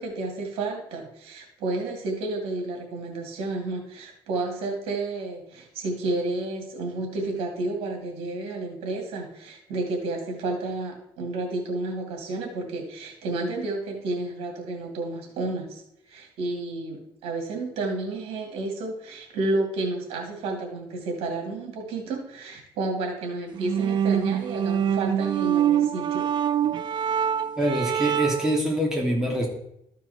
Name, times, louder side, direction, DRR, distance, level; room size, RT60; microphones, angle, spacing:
voice 1, 0.0-26.3, right 2 dB, 85° right, 2 dB, 2.5 m, -31 dB
sound 1, 23.5-28.6, right 9 dB, 50° right, 0.5 m, -25 dB
voice 2, 27.6-29.5, equal, 5° right, -2 dB, 3.0 m, -25 dB
13.5 x 4.7 x 4.2 m, 0.78 s
cardioid pair, 100°, 10 cm